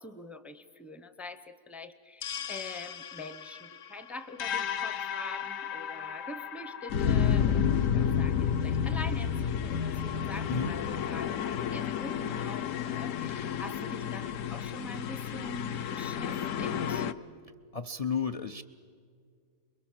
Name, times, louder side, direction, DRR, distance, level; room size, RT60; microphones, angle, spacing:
voice 1, 0.0-17.1, left 2 dB, ahead, 12 dB, 0.6 m, -44 dB
sound 1, 2.2-17.1, left 8 dB, 60° left, 1.1 m, -31 dB
voice 2, 17.7-18.6, left 5 dB, 45° left, 6 dB, 0.4 m, -32 dB
29.0 x 22.0 x 7.5 m, 2.2 s
omnidirectional pair, 1.6 m